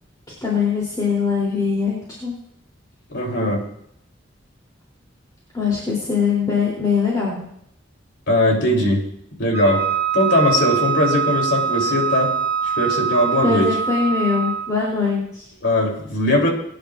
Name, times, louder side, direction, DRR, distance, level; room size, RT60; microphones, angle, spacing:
voice 1, 0.4-2.3 5.5-7.4 13.4-15.4, left 5 dB, 20° left, -5 dB, 3.2 m, -22 dB
voice 2, 3.1-3.6 8.3-9.1 9.4-9.9 10.1-12.3 12.6-13.7 15.6-16.5, left 1 dB, 65° left, 0 dB, 3.4 m, -19 dB
Wind instrument woodwind instrument, 9.5-14.7, right 7 dB, 15° right, 2.8 m, -23 dB
23.5 x 10.5 x 2.5 m, 0.72 s
head